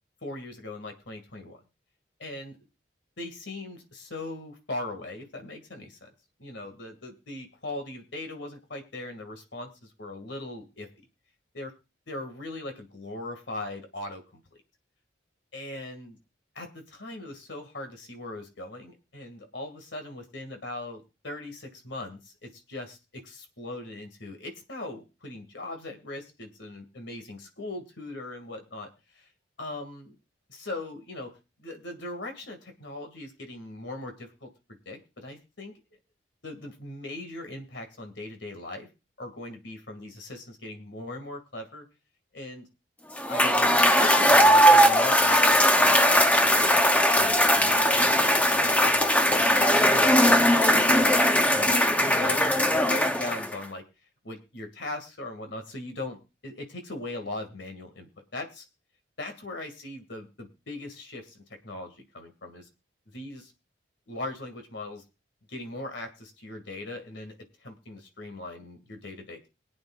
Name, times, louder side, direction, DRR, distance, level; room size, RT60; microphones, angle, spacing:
voice 1, 0.2-1.6 2.2-2.6 3.2-6.1 6.4-10.9 11.5-11.7 12.1-14.6 15.5-16.1 16.6-28.9 29.1-29.3 29.6-30.1 30.5-31.3 31.6-36.0 36.4-38.9 39.2-41.9 42.3-42.7 43.3-53.8 54.2-58.6 59.2-62.7 63.1-63.5 64.1-65.0 65.5-67.3 67.6-69.5, left 2 dB, 70° left, 5 dB, 2.2 m, -39 dB
Cheering / Applause / Crowd, 43.2-53.6, equal, 10° left, 0.7 m, -20 dB
22.0 x 8.8 x 2.5 m, 0.28 s
head